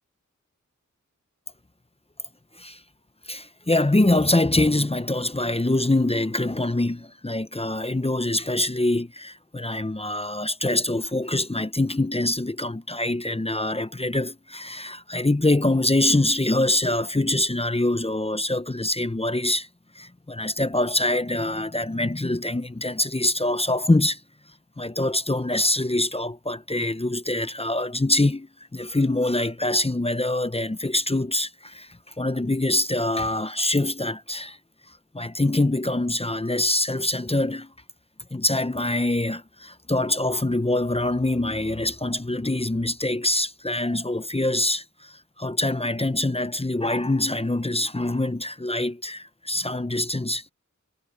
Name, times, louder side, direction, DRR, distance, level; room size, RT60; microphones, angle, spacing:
voice 1, 3.3-19.7 19.9-24.2 24.8-34.6 35.1-37.7 38.3-50.4, left 2 dB, 20° left, 0.8 m, -24 dB
wide cardioid pair, 40°, 31 cm